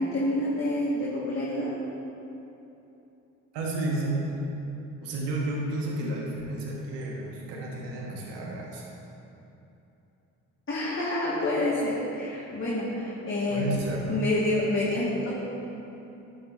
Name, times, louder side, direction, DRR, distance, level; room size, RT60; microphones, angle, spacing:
voice 1, 0.0-1.7 10.7-13.8 14.1-15.3, left 1 dB, 30° left, -7 dB, 1.9 m, -28 dB
voice 2, 3.5-4.3 5.0-8.9 13.5-14.3, right 2 dB, 70° right, -2 dB, 1.7 m, -31 dB
11.5 x 8.0 x 2.7 m, 2.9 s
hypercardioid pair, 45°, 43 cm